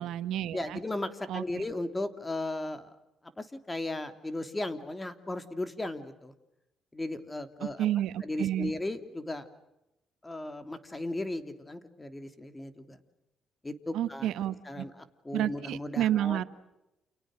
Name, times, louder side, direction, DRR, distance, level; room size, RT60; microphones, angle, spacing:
voice 1, 0.0-0.8 1.3-1.6 7.6-8.7 13.9-14.8 15.3-16.4, right 12 dB, 85° right, 12 dB, 1.5 m, -30 dB
voice 2, 0.5-2.9 3.4-6.3 6.9-7.9 8.2-9.5 10.2-13.0 13.6-14.3 14.6-16.4, left 2 dB, 15° left, 9 dB, 3.0 m, -36 dB
30.0 x 29.0 x 6.5 m, 0.90 s
cardioid pair, 90°, 0 cm